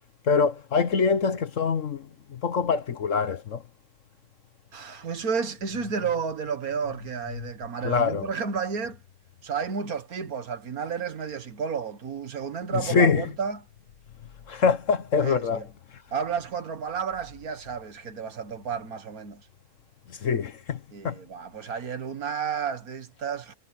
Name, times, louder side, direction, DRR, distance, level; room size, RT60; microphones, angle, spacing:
voice 1, 0.3-2.0 2.3-3.6 7.8-8.3 12.9-13.2 14.5-15.6 20.2-20.8 21.0-21.1, left 5 dB, 55° left, 1.3 m, -24 dB
voice 2, 4.7-9.0 9.4-13.6 15.2-15.7 16.1-19.5 20.9-23.5, right 6 dB, 65° right, 1.9 m, -31 dB
omnidirectional pair, 1.7 m